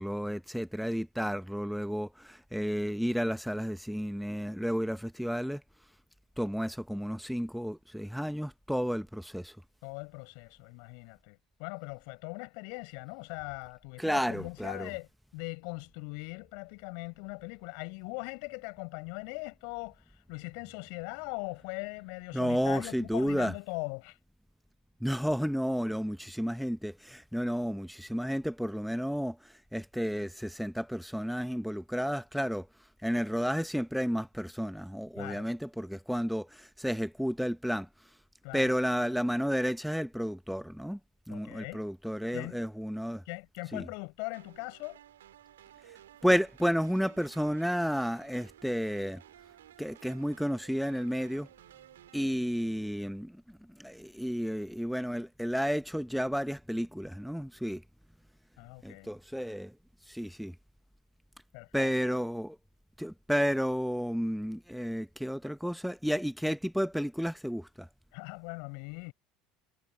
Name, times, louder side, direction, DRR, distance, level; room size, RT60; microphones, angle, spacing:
voice 1, 0.0-5.6 6.4-9.6 14.0-14.9 22.3-23.5 25.0-32.7 33.0-37.9 38.5-41.0 41.3-43.2 43.7-43.9 45.9-46.0 46.2-49.2 49.8-51.5 52.1-53.4 53.8-57.8 58.8-59.7 60.1-60.5 61.7-62.6 63.0-67.9, equal, ahead, 1.0 m, -32 dB
voice 2, 9.8-24.2 35.2-35.4 38.4-38.7 41.3-41.8 42.3-42.6 43.2-45.0 58.6-59.1 61.5-61.9 68.1-69.1, left 40 dB or more, 65° left, 6.3 m, -40 dB
sound 1, 44.3-52.3, right 12 dB, 80° right, 4.4 m, -56 dB
hypercardioid pair, 75°, 0 cm